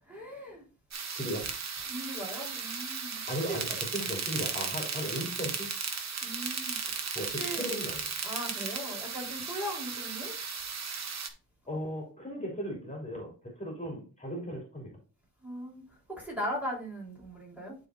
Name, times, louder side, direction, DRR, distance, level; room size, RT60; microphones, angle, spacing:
voice 1, 0.1-0.6 1.9-3.6 6.2-7.8 8.2-10.3 15.4-15.8 16.1-17.8, equal, 5° right, -4 dB, 3.6 m, -39 dB
sound 1, 0.9-11.3, right 5 dB, 50° right, 1.3 m, -36 dB
voice 2, 1.1-1.5 3.3-5.7 7.1-8.1 11.7-13.3 13.6-14.9, equal, 20° left, -1 dB, 3.2 m, -36 dB
11.5 x 4.3 x 2.5 m, 0.34 s
wide cardioid pair, 135°, 34 cm